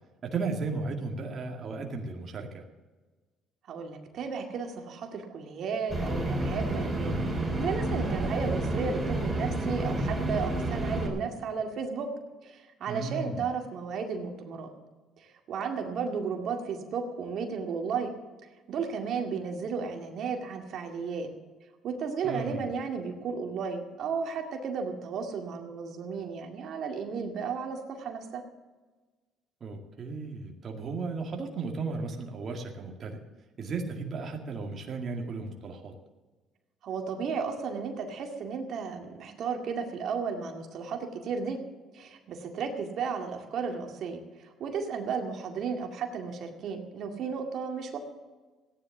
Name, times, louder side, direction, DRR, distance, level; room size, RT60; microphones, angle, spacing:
voice 1, 0.2-2.6 12.9-13.5 22.2-22.7 29.6-33.2 33.6-35.9, right 4 dB, 45° right, 1 dB, 2.0 m, -35 dB
voice 2, 3.7-7.2 7.6-12.1 12.4-14.7 15.2-18.1 18.7-21.3 21.8-28.4 36.8-41.6 41.9-48.0, right 5 dB, 60° right, 3 dB, 2.1 m, -34 dB
sound 1, 5.9-11.1, right 2 dB, 15° right, 4.0 m, -30 dB
15.5 x 10.0 x 7.2 m, 1.3 s
cardioid pair, 105°, 0 cm